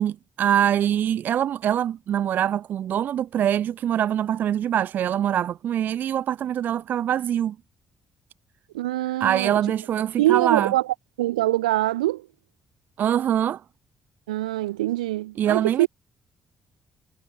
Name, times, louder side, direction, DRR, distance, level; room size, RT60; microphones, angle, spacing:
voice 1, 0.0-7.6 9.2-10.7 13.0-13.6 15.4-15.9, right 10 dB, 50° right, 0.4 m, -24 dB
voice 2, 8.7-9.6 10.2-12.3 14.3-15.9, right 16 dB, 75° right, 1.1 m, -24 dB
figure-of-eight pair, 40°, 4 cm